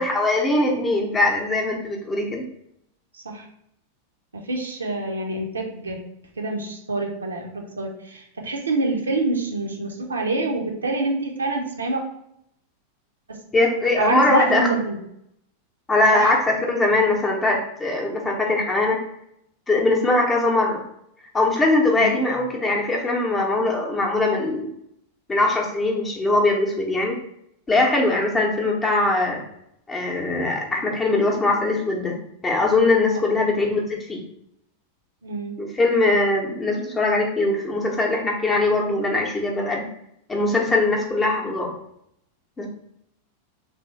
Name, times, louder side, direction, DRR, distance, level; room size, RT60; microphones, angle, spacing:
voice 1, 0.0-2.4 13.5-14.7 15.9-19.0 19.7-20.8 21.3-24.7 25.3-27.2 27.7-29.4 29.9-32.1 32.4-34.2 35.6-39.8 40.3-41.7 42.6-42.7, left 2 dB, 15° left, 0 dB, 0.7 m, -21 dB
voice 2, 3.1-3.5 4.3-6.0 6.4-12.0 13.3-13.4 14.0-15.0 16.1-16.3 22.0-22.1 33.1-33.4 35.2-35.5, right 2 dB, 75° right, 2 dB, 0.6 m, -26 dB
3.4 x 2.6 x 3.0 m, 0.75 s
figure-of-eight pair, 90°, 0 cm